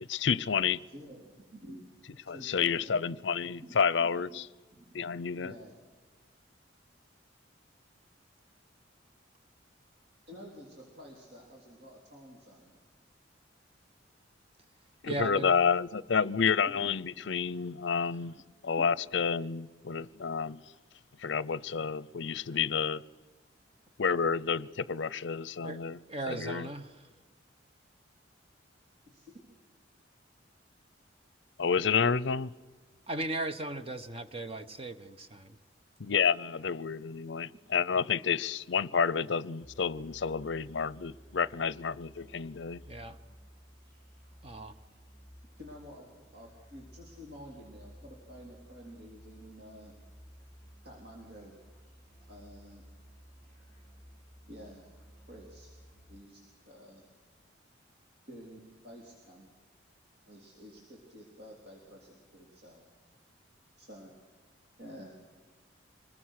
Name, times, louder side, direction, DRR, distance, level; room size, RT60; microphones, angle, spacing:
voice 1, 0.1-0.8 2.3-4.5 4.9-5.5 15.0-18.3 18.6-20.6 21.2-23.0 24.0-26.0 26.3-26.7 31.6-32.5 36.0-42.8, left 6 dB, 70° left, 0.6 m, -30 dB
voice 2, 0.9-1.8 2.3-3.2 3.6-4.4 4.7-5.0 5.3-5.7 10.3-12.8 16.8-16.9 17.2-17.3 18.3-18.4 18.8-19.0 29.1-29.3 45.6-49.9 50.8-51.6 52.3-52.8 54.5-54.9 55.3-55.7 56.1-57.0 58.3-59.5 60.3-62.8 63.8-64.2 64.8-65.2, equal, 60° right, 3.8 m, -50 dB
voice 3, 15.0-15.6 25.6-25.8 26.1-26.9 33.1-35.6 42.9-43.2 44.4-44.7, right 2 dB, 30° right, 1.0 m, -37 dB
Musical instrument, 39.6-56.1, equal, 10° left, 7.1 m, -55 dB
25.5 x 20.5 x 6.5 m
head